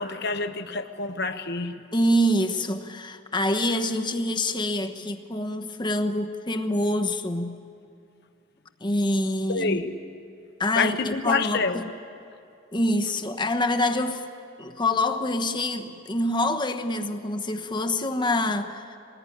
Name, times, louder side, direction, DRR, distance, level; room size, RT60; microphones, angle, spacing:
voice 1, 0.0-1.8 9.5-9.9 10.7-11.8, left 4 dB, 55° left, 8 dB, 1.0 m, -27 dB
voice 2, 1.9-7.7 8.8-9.8 10.6-11.9 12.7-14.3 14.6-19.0, left 1 dB, 25° left, 5 dB, 1.1 m, -26 dB
26.0 x 20.0 x 10.0 m, 2.5 s
head